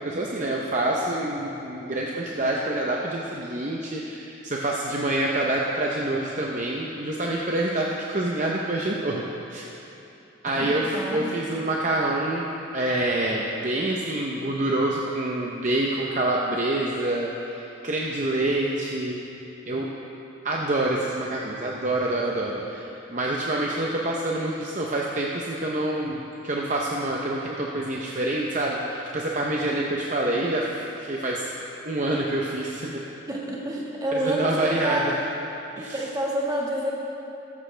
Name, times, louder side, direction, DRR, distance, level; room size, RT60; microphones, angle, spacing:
voice 1, 0.0-9.6 10.4-12.4 12.7-19.2 19.7-19.9 20.4-31.4 31.8-33.0 34.1-35.1 35.8-36.0, right 1 dB, 40° right, -2 dB, 0.7 m, -27 dB
voice 2, 10.5-11.3 33.3-35.1 35.8-36.9, equal, 20° right, -3 dB, 1.6 m, -28 dB
14.5 x 13.0 x 3.4 m, 2.9 s
head